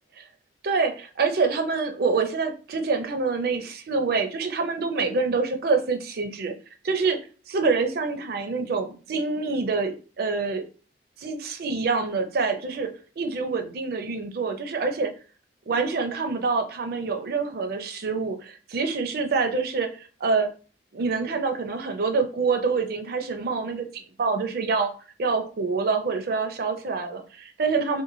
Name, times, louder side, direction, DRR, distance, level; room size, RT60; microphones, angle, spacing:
voice 1, 0.6-6.5 6.8-7.2 7.5-10.6 11.2-12.9 13.2-15.1 15.7-20.5 20.9-24.9 25.2-28.0, right 4 dB, 55° right, 6 dB, 0.4 m, -26 dB
3.0 x 2.1 x 2.5 m, 0.37 s
head